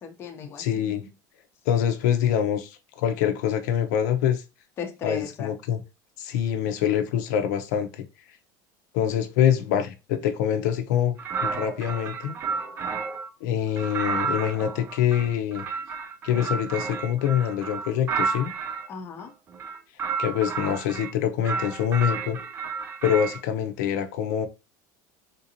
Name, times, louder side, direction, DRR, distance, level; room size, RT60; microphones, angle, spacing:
voice 1, 0.0-1.1 4.8-5.5 18.9-19.3, left 5 dB, 25° left, 0.6 m, -37 dB
voice 2, 0.6-1.0 1.7-2.7 3.0-4.4 5.0-5.8 6.2-8.1 8.9-12.4 13.4-15.6 16.2-18.5 20.2-22.4 23.0-24.5, left 9 dB, 70° left, 0.6 m, -25 dB
sound 1, 11.2-13.3 13.8-18.9 19.5-21.1 21.4-23.4, right 5 dB, 20° right, 0.3 m, -31 dB
3.7 x 2.6 x 2.8 m
supercardioid pair, 165°, 10 cm